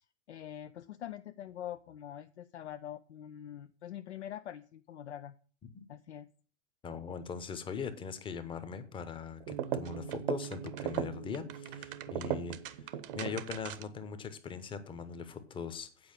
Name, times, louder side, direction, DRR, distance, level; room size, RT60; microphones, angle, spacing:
voice 1, 0.0-5.3 5.9-6.3, left 11 dB, 70° left, 10 dB, 0.6 m, -44 dB
voice 2, 6.8-16.1, left 6 dB, 15° left, 11 dB, 0.9 m, -41 dB
sound 1, 9.4-14.0, right 10 dB, 50° right, 0.8 m, -38 dB
8.8 x 5.0 x 7.7 m, 0.42 s
figure-of-eight pair, 110°, 35 cm